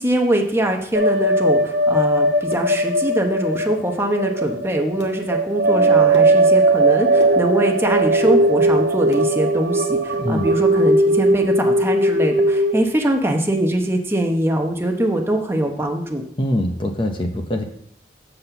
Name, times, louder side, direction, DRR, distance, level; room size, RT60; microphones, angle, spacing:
voice 1, 0.0-16.2, right 1 dB, 15° right, 3 dB, 0.8 m, -22 dB
sound 1, 0.9-12.7, right 1 dB, 80° right, 0.9 m, -18 dB
sound 2, 2.5-3.2 3.4-4.3 4.7-5.2 5.6-7.8 8.1-9.3 9.7-11.2 11.5-11.6 12.0-12.2 12.6-12.8, equal, 85° left, 1.6 m, -39 dB
voice 2, 10.1-10.4 16.4-17.6, left 1 dB, 30° left, 5 dB, 0.6 m, -23 dB
7.5 x 4.2 x 6.8 m, 0.69 s
head